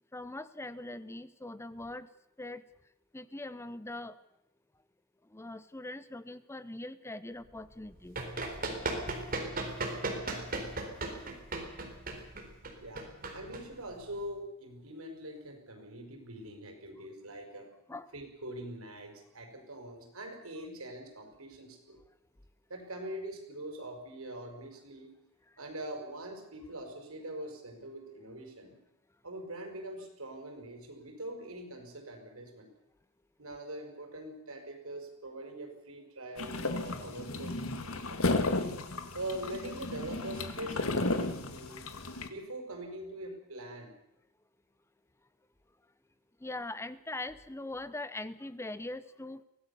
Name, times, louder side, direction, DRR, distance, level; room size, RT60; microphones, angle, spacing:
voice 1, 0.1-2.1 2.4-2.6 3.1-4.2 5.3-8.2 17.9-18.1 46.4-49.4, left 2 dB, 10° left, 14 dB, 0.7 m, -41 dB
Run, 7.8-14.2, right 2 dB, 45° right, 4.1 m, -37 dB
voice 2, 12.8-17.7 18.1-22.0 22.7-25.1 25.6-28.8 29.2-32.7 33.4-38.5 39.1-41.8 42.2-43.9, right 1 dB, 85° right, 4 dB, 5.4 m, -43 dB
sound 1, 36.4-42.3, left 2 dB, 80° left, 2.0 m, -33 dB
24.0 x 17.0 x 7.0 m, 0.83 s
head